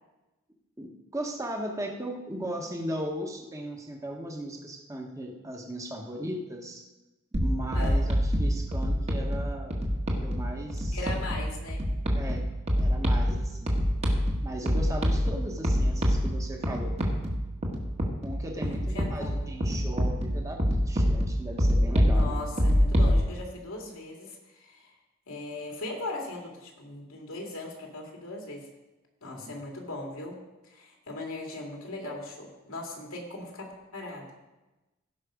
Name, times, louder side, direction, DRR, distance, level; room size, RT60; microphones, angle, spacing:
voice 1, 0.8-6.8 7.3-9.8 10.2-11.0 12.1-13.8 14.4-17.0 18.2-22.4 29.2-29.5, equal, 15° right, 1 dB, 1.2 m, -37 dB
sound 1, 7.3-23.2, equal, 30° right, 1.5 m, -26 dB
voice 2, 10.9-11.8 18.7-19.5 22.1-24.9 25.3-28.7 29.2-30.4 30.6-34.3, left 2 dB, 90° left, 0 dB, 2.6 m, -39 dB
16.5 x 5.9 x 5.1 m, 1.1 s
head